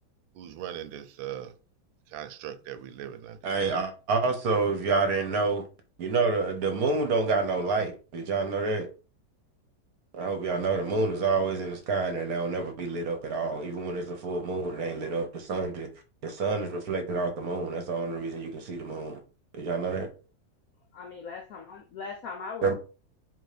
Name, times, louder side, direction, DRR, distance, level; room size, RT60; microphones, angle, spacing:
voice 1, 0.4-1.5 2.1-3.4, right 11 dB, 85° right, 1.4 m, -39 dB
voice 2, 3.4-5.6 6.0-8.9 10.1-15.9 16.2-19.2 19.6-20.1 22.6-22.7, right 4 dB, 60° right, 1.2 m, -28 dB
voice 3, 20.9-22.7, left 5 dB, 75° left, 0.8 m, -39 dB
3.9 x 2.7 x 4.8 m
omnidirectional pair, 2.1 m